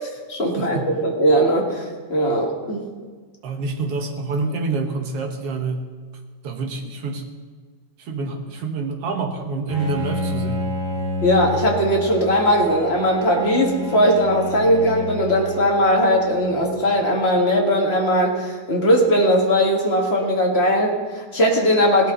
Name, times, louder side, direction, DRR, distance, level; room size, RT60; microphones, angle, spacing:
voice 1, 0.0-2.8 11.2-22.1, equal, 30° left, 0 dB, 1.2 m, -19 dB
voice 2, 0.6-0.9 3.4-5.8 6.4-7.2 8.0-10.7, right 3 dB, 60° right, 3 dB, 1.7 m, -27 dB
Bowed string instrument, 9.7-16.8, left 1 dB, 25° right, 2.7 m, -30 dB
18.0 x 12.5 x 3.8 m, 1.5 s
omnidirectional pair, 3.6 m